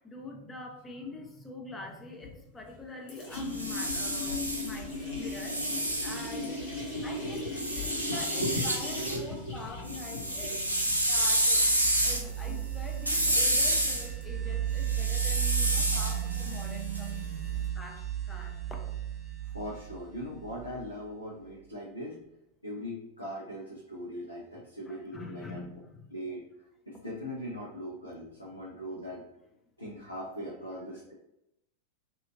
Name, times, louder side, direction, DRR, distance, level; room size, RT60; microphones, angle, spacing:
voice 1, 0.0-5.6 6.0-6.7 7.0-10.6 11.1-11.7 12.0-17.2 17.8-18.9 24.9-26.1, left 3 dB, 15° left, 2 dB, 0.5 m, -44 dB
sound 1, 2.2-2.8 3.1-12.4, left 2 dB, 50° left, 1.0 m, -39 dB
sound 2, 3.3-6.9 7.6-9.2 9.6-17.5, right 1 dB, 85° right, 0.4 m, -30 dB
voice 2, 6.9-7.6 8.1-8.7 9.0-10.6 19.4-22.2 22.6-25.7 26.1-26.4 26.9-29.2 29.8-31.1, equal, 85° left, -5 dB, 0.6 m, -39 dB
Buzzing Cicadas, 10.5-21.1, right 11 dB, 20° right, 0.9 m, -35 dB
2.9 x 2.4 x 2.4 m, 0.84 s
figure-of-eight pair, 90°, 0 cm